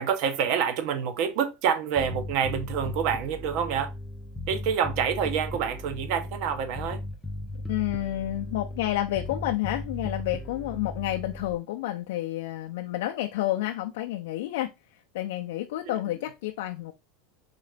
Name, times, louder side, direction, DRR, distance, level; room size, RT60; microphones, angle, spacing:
voice 1, 0.0-3.9 4.5-7.0 15.8-15.9, right 7 dB, 45° right, 0.8 m, -27 dB
Bass guitar, 2.0-11.6, left 1 dB, 5° left, 0.4 m, -37 dB
voice 2, 7.7-16.9, left 14 dB, 75° left, 0.4 m, -30 dB
3.9 x 3.7 x 3.3 m
supercardioid pair, 180°, 0 cm